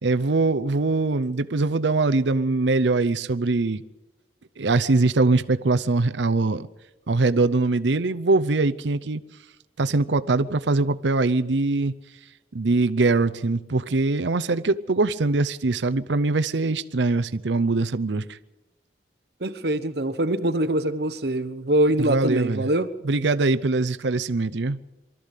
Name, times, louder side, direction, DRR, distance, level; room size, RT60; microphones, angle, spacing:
voice 1, 0.0-3.8 4.6-6.7 7.1-9.2 9.8-11.9 12.5-18.4 22.0-22.7 23.0-24.8, right 3 dB, 80° right, 0.7 m, -22 dB
voice 2, 19.4-22.9, right 1 dB, 60° right, 1.2 m, -23 dB
24.0 x 13.5 x 8.3 m
head